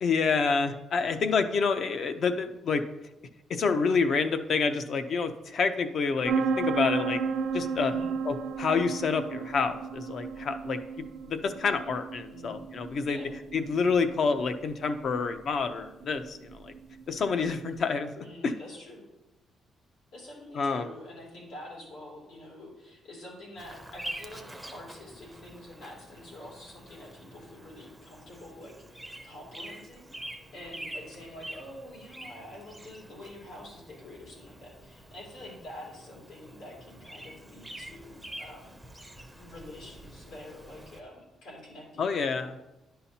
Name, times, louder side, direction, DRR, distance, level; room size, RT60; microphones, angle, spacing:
voice 1, 0.0-2.8 3.5-7.2 7.5-7.9 8.2-10.8 11.3-13.2 13.5-16.4 16.6-16.7 17.1-18.5 20.6-20.9 42.0-42.5, left 5 dB, 45° left, 9 dB, 0.5 m, -28 dB
sound 1, 6.2-17.8, right 5 dB, 60° right, 0.6 m, -34 dB
voice 2, 12.3-12.6 13.1-13.4 18.2-19.0 20.1-38.7 39.1-42.5, left 1 dB, 90° left, -3 dB, 2.7 m, -47 dB
Bird vocalization bird call bird song, 23.6-41.0, right 1 dB, ahead, 0.5 m, -46 dB
10.5 x 5.6 x 2.8 m, 0.96 s
cardioid pair, 175°, 0 cm